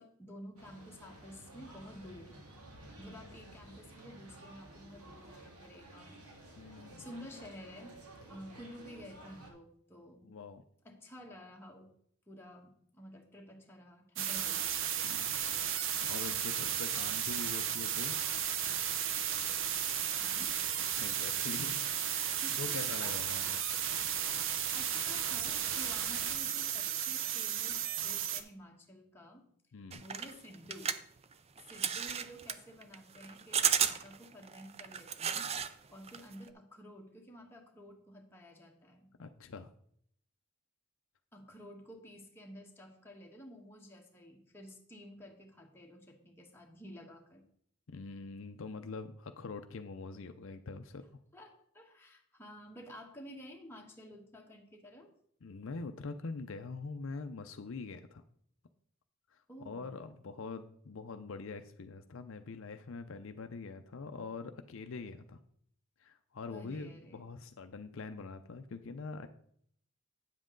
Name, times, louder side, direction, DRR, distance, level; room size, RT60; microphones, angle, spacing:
voice 1, 0.0-2.3 3.0-6.2 7.0-7.9 8.3-10.4 10.8-11.9 12.3-14.9 20.1-20.6 22.4-23.6 24.7-29.5 30.0-31.0 31.6-35.5 35.9-39.1 41.3-47.4 51.3-55.1 59.5-60.0 66.5-67.2, equal, 10° left, 0 dB, 1.2 m, -52 dB
sound 1, 0.6-9.5, right 1 dB, 90° right, 2.0 m, -53 dB
voice 2, 6.5-7.1 10.2-10.6 15.0-18.2 21.0-23.6 29.7-30.0 39.2-39.7 47.9-51.0 55.4-58.2 59.3-59.4 59.6-65.4 66.0-69.3, left 4 dB, 60° left, 8 dB, 0.5 m, -44 dB
sound 2, 14.2-28.4, right 9 dB, 60° right, 0.7 m, -34 dB
sound 3, 29.9-35.7 36.0-36.5, right 8 dB, 30° right, 0.4 m, -34 dB
9.1 x 7.5 x 3.8 m, 0.65 s
head